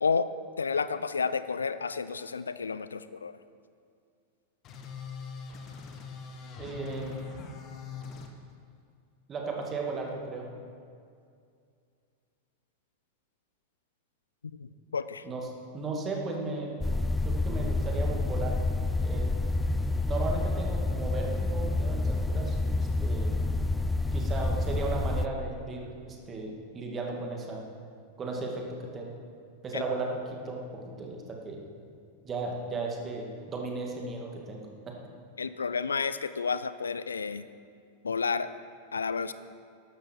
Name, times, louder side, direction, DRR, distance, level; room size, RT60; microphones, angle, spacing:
voice 1, 0.6-3.4 14.4-15.3 29.7-29.8 35.4-37.4 38.0-38.5 38.9-39.3, left 5 dB, 75° left, 14 dB, 0.5 m, -31 dB
sound 1, 4.6-8.3, left 5 dB, 35° left, 1.4 m, -42 dB
voice 2, 6.6-7.2 9.3-10.5 15.2-15.5 15.7-16.8 17.2-18.6 19.0-19.3 20.1-23.3 24.1-27.7 28.2-28.6 28.9-29.1 29.6-30.6 31.0-31.6 32.2-34.9, right 3 dB, 25° right, 0 dB, 2.3 m, -35 dB
sound 2, 16.8-25.3, left 2 dB, 5° left, 0.5 m, -28 dB
13.0 x 12.0 x 4.7 m, 2.3 s
figure-of-eight pair, 90°, 0 cm